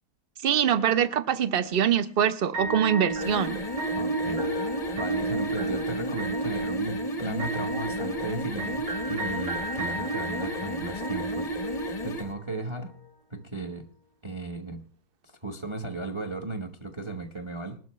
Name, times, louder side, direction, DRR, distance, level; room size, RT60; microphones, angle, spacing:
voice 1, 0.4-3.6, right 8 dB, 45° right, 0.7 m, -24 dB
sound 1, 2.5-12.6, right 2 dB, 75° right, 3.7 m, -32 dB
sound 2, 3.1-12.3, left 1 dB, 30° left, 0.7 m, -35 dB
voice 2, 4.0-13.0 13.3-13.9 14.2-14.8 15.2-17.8, right 2 dB, 20° right, 1.0 m, -36 dB
21.0 x 12.5 x 3.2 m
omnidirectional pair, 1.9 m